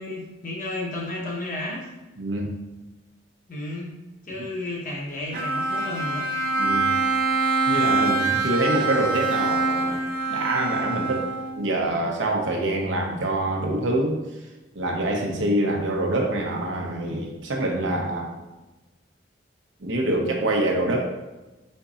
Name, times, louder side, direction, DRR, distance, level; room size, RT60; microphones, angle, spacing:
voice 1, 0.0-1.9 3.5-3.9 4.2-6.3, left 1 dB, 45° left, -3 dB, 1.0 m, -32 dB
voice 2, 2.2-2.5 6.6-6.9 7.7-10.0 10.3-11.2 11.6-14.2 14.7-18.3 19.8-21.1, right 1 dB, 85° right, 0 dB, 0.8 m, -25 dB
Bowed string instrument, 5.3-11.7, right 3 dB, 50° right, 0.4 m, -24 dB
4.4 x 3.9 x 2.4 m, 1.1 s
head